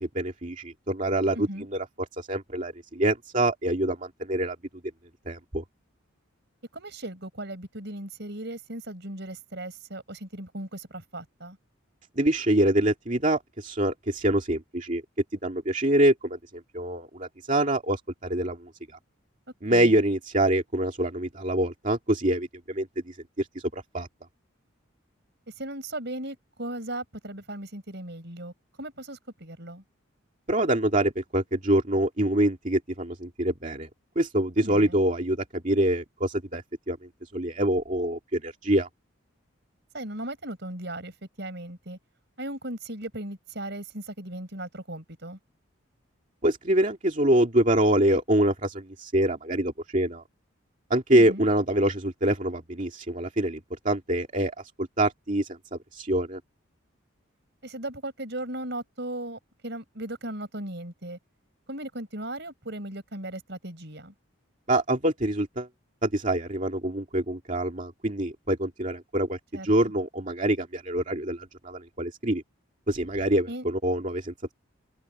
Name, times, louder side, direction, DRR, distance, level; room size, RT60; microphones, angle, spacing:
voice 1, 0.0-1.8 2.2-4.6 5.3-5.6 12.2-15.0 15.4-18.7 19.6-24.1 30.5-33.9 34.2-37.0 37.3-38.9 46.4-50.2 50.9-56.4 64.7-65.7 66.0-69.4 69.6-72.4 72.9-74.5, right 1 dB, 40° right, 2.4 m, -25 dB
voice 2, 1.3-1.7 6.7-11.6 19.7-20.0 25.6-28.5 28.8-29.8 34.6-35.0 39.9-42.0 42.4-45.4 51.1-51.5 57.6-61.2 61.7-64.1 69.5-69.9 73.5-73.6, right 1 dB, 55° right, 5.7 m, -37 dB
head